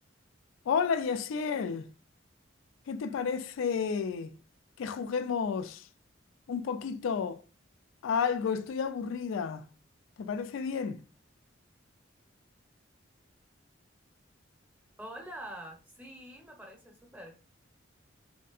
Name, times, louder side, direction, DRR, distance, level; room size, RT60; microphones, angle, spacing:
voice 1, 0.7-1.9 2.9-4.3 4.8-5.8 6.5-7.4 8.0-9.7 10.2-11.0, left 6 dB, 80° left, 0.3 m, -31 dB
voice 2, 15.0-17.4, right 1 dB, 10° right, 0.7 m, -45 dB
3.2 x 2.6 x 2.3 m
head